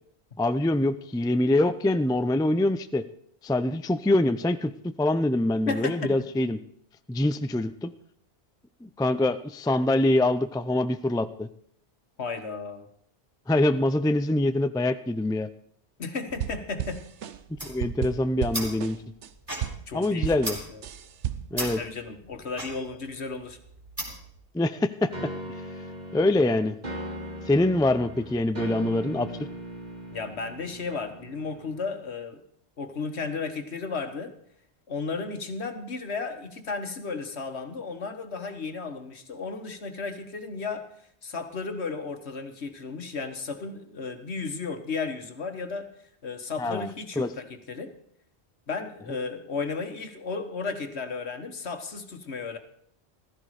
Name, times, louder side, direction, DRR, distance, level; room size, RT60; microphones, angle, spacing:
voice 1, 0.4-3.0 3.4-4.7 5.0-6.6 7.1-7.9 8.8-11.5 13.5-15.5 17.5-19.0 19.9-20.6 21.5-21.8 24.5-25.1 26.1-26.8 27.5-29.3 46.6-46.9 47.2-47.3, left 1 dB, 5° left, 11 dB, 0.4 m, -24 dB
voice 2, 5.7-6.1 12.2-12.9 16.0-17.0 19.9-20.3 20.7-20.8 21.5-23.6 30.1-32.4 32.8-34.3 34.9-40.9 41.2-45.9 46.2-47.9 48.7-52.6, left 4 dB, 70° left, 7 dB, 1.7 m, -34 dB
sound 1, 16.3-19.3 19.6-21.6, right 10 dB, 85° right, 1.1 m, -34 dB
sound 2, 17.4-24.4, right 1 dB, 20° right, 4.3 m, -38 dB
sound 3, 25.1-32.0, equal, 40° right, 2.3 m, -39 dB
15.5 x 14.5 x 4.9 m, 0.66 s
omnidirectional pair, 1.2 m